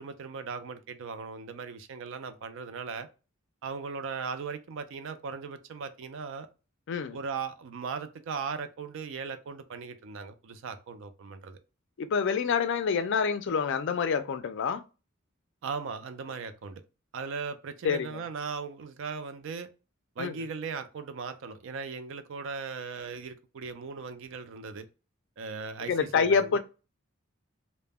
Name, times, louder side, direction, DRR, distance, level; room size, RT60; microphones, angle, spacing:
voice 1, 0.0-3.1 3.6-6.5 7.1-11.6 15.6-16.8 17.1-19.7 20.2-24.9 25.4-26.6, right 5 dB, 65° right, 0.4 m, -38 dB
voice 2, 12.0-14.8 17.8-18.2 20.2-20.3 25.9-26.6, left 6 dB, 60° left, 0.3 m, -27 dB
2.1 x 2.0 x 3.3 m
head